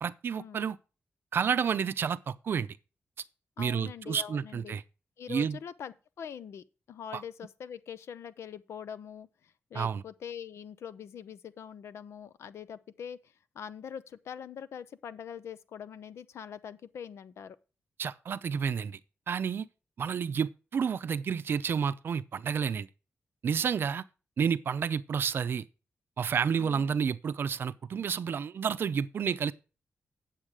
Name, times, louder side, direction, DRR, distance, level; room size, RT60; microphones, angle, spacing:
voice 1, 0.0-0.8 1.3-2.7 3.6-4.8 5.3-5.6 7.1-7.2 9.7-10.0 18.0-19.0 19.3-19.7 20.0-22.9 23.4-24.0 24.4-25.6 26.2-29.5, right 7 dB, 55° right, 0.5 m, -30 dB
voice 2, 3.6-4.8 5.2-17.6 26.6-26.9, left 8 dB, 85° left, 0.7 m, -43 dB
9.0 x 7.4 x 4.8 m
wide cardioid pair, 170°, 4 cm